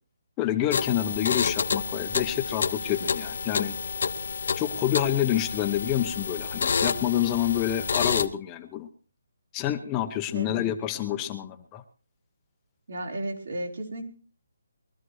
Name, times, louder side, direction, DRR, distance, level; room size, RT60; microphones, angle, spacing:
voice 1, 0.4-3.7 4.6-8.9 9.5-11.8, left 12 dB, 15° left, 6 dB, 0.7 m, -28 dB
sound 1, 0.7-8.3, left 5 dB, 50° left, 0.8 m, -29 dB
voice 2, 12.9-14.0, right 1 dB, 65° right, 1 dB, 4.0 m, -33 dB
23.0 x 13.0 x 3.1 m, 0.38 s
hypercardioid pair, 170°, 0 cm